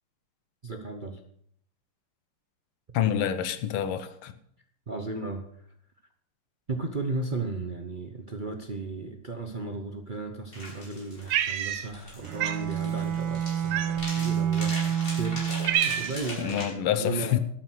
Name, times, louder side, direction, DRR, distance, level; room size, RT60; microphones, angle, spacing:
voice 1, 0.6-1.2 4.9-5.4 6.7-15.6 15.8-17.4, right 3 dB, 45° right, 0.6 m, -35 dB
voice 2, 2.9-4.3 16.4-17.4, left 10 dB, 75° left, 1.7 m, -27 dB
sound 1, 10.5-16.7, left 1 dB, 25° left, 5.4 m, -40 dB
Cat, 11.3-12.1 12.4-12.6 13.7-14.2 14.9-15.0 15.3-16.4, right 10 dB, 75° right, 1.6 m, -28 dB
Bowed string instrument, 12.2-16.0, right 9 dB, 90° right, 2.3 m, -29 dB
12.5 x 8.8 x 6.3 m
omnidirectional pair, 2.4 m